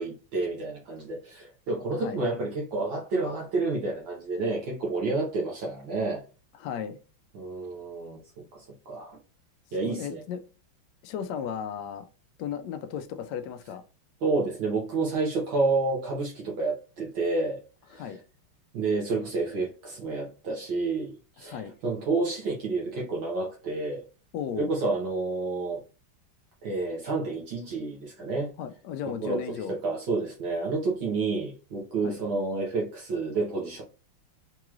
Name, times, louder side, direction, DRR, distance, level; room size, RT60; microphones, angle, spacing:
voice 1, 0.0-6.2 7.3-8.2 8.5-9.2 9.7-10.2 14.2-17.6 17.9-18.1 18.7-24.0 24.6-25.8 26.6-28.5 29.2-29.4 29.7-33.8, right 3 dB, 65° right, -3 dB, 1.7 m, -29 dB
voice 2, 6.5-7.0 9.8-10.4 11.0-12.0 12.4-13.8 17.9-18.2 21.4-21.7 24.3-24.7 28.6-29.7 32.0-32.2, left 8 dB, 80° left, 9 dB, 0.9 m, -35 dB
4.6 x 3.0 x 2.4 m, 0.34 s
omnidirectional pair, 2.4 m